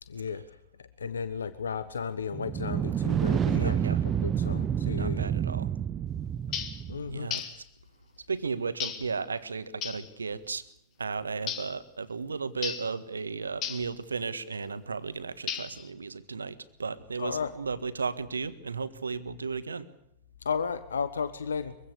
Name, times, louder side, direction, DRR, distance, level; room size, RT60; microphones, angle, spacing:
voice 1, 0.0-5.3 6.5-6.6 6.9-7.5 17.2-17.5 20.4-21.8, left 6 dB, 70° left, 13 dB, 1.2 m, -34 dB
sound 1, 2.3-7.2, right 9 dB, 25° right, 1.0 m, -29 dB
voice 2, 3.6-4.0 4.9-5.7 7.1-7.4 8.3-10.6 11.0-19.9, right 5 dB, 75° right, 13 dB, 1.6 m, -34 dB
sound 2, 6.5-6.8 7.3-7.6 8.8-9.1 9.8-10.1 11.5-11.8 12.6-12.9 13.6-13.9 15.5-15.9, left 9 dB, 35° left, 3.0 m, -35 dB
24.0 x 23.5 x 6.9 m, 0.75 s
figure-of-eight pair, 90°, 0 cm